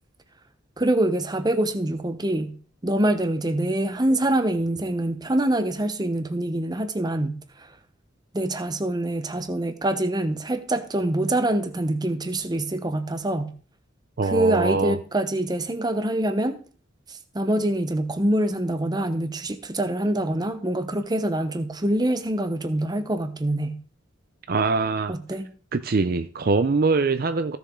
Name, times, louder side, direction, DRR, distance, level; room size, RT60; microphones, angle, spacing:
voice 1, 0.8-2.5 2.8-7.4 8.3-13.5 14.2-16.6 17.1-23.8 25.1-25.5, right 1 dB, 20° right, 0.9 m, -25 dB
voice 2, 14.2-15.0 24.5-25.1 25.7-27.6, right 4 dB, 50° right, 0.5 m, -23 dB
15.0 x 7.0 x 3.7 m
head